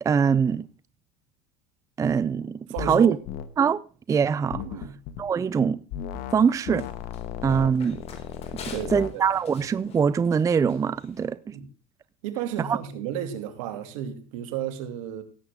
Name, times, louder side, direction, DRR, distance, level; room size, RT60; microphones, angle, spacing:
voice 1, 0.0-0.7 2.0-3.2 3.6-3.8 4.1-4.6 5.2-5.8 6.3-6.9 7.4-8.0 8.7-11.6 12.7-12.8, right 6 dB, 20° right, 0.5 m, -23 dB
voice 2, 2.7-3.2 4.6-4.9 8.7-9.3 11.4-11.7 12.2-15.2, right 9 dB, 75° right, 2.6 m, -33 dB
sound 1, 2.8-3.0 3.3-3.5 4.5-5.2 5.9-6.4 6.7-9.1, left 10 dB, 60° left, 1.4 m, -35 dB
Run, 6.1-11.3, left 5 dB, 40° left, 3.7 m, -48 dB
17.0 x 7.8 x 3.6 m
supercardioid pair, 105°, 17 cm